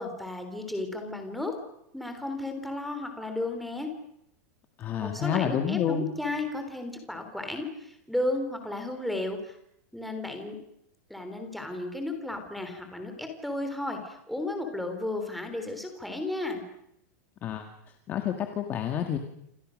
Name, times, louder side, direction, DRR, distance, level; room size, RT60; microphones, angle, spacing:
voice 1, 0.0-1.6 1.9-3.9 5.0-9.6 9.9-10.6 11.1-16.7, left 2 dB, ahead, 5 dB, 3.5 m, -33 dB
voice 2, 4.8-6.2 17.4-17.7 18.1-19.2, left 9 dB, 20° left, 6 dB, 1.7 m, -29 dB
28.5 x 26.5 x 6.4 m, 0.77 s
supercardioid pair, 175°, 9 cm